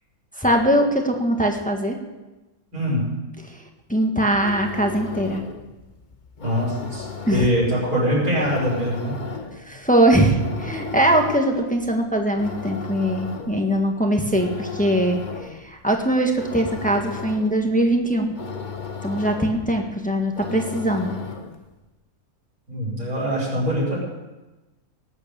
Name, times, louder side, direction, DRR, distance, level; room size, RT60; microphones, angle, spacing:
voice 1, 0.4-2.0 3.4-3.6 3.9-5.4 7.3-7.5 9.6-18.3 19.0-21.1, right 1 dB, 5° left, 2 dB, 1.6 m, -21 dB
voice 2, 2.7-3.0 6.4-9.2 22.7-24.0, equal, 70° right, -6 dB, 6.0 m, -23 dB
sound 1, 4.2-21.7, left 5 dB, 35° left, 1.1 m, -36 dB
19.0 x 8.6 x 7.0 m, 1.1 s
omnidirectional pair, 1.6 m